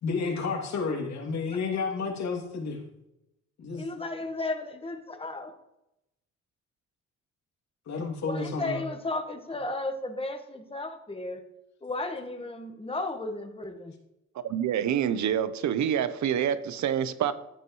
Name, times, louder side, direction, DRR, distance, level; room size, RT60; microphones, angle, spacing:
voice 1, 0.0-2.8 3.6-3.8 7.9-8.8, left 4 dB, 65° left, 2.9 m, -31 dB
voice 2, 3.8-5.5 8.3-11.4 11.8-13.9, left 2 dB, 20° left, 1.5 m, -34 dB
voice 3, 14.4-17.3, right 9 dB, 70° right, 0.9 m, -27 dB
14.5 x 7.9 x 3.2 m
cardioid pair, 90°, 30 cm